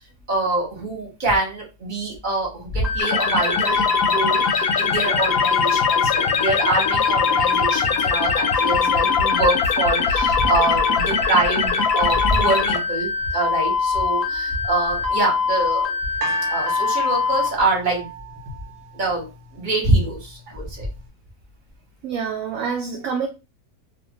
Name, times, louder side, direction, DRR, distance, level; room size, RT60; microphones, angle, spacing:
voice 1, 0.3-16.0 16.5-18.1 18.9-20.9, right 2 dB, 35° right, 1.1 m, -25 dB
sound 1, 2.8-17.5, left 5 dB, ahead, 0.5 m, -24 dB
sound 2, 3.0-12.8, left 6 dB, 70° left, 1.0 m, -23 dB
sound 3, 16.2-19.4 20.2-20.3, right 1 dB, 85° right, 1.2 m, -32 dB
voice 2, 22.0-23.3, right 6 dB, 70° right, 0.8 m, -26 dB
2.6 x 2.5 x 2.8 m
omnidirectional pair, 1.7 m